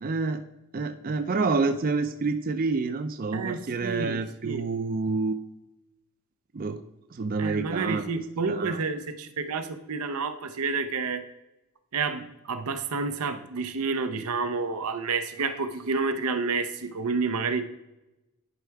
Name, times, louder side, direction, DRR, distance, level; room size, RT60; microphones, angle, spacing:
voice 1, 0.0-0.4 0.7-5.4 6.5-6.8 7.1-8.1 8.5-8.8, right 4 dB, 40° right, 9 dB, 0.4 m, -28 dB
voice 2, 3.3-4.6 7.4-11.2 11.9-17.6, right 4 dB, 90° right, 9 dB, 0.7 m, -29 dB
10.5 x 4.7 x 3.4 m, 0.96 s
head